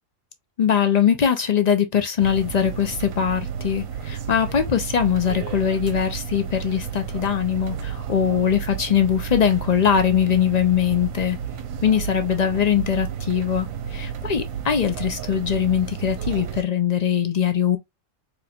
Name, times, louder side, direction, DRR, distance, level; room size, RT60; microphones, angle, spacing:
voice 1, 0.6-11.4 11.8-17.8, left 8 dB, 70° left, 0.4 m, -21 dB
sound 1, 2.2-16.6, right 8 dB, 70° right, 1.0 m, -32 dB
4.2 x 3.0 x 2.3 m
omnidirectional pair, 1.5 m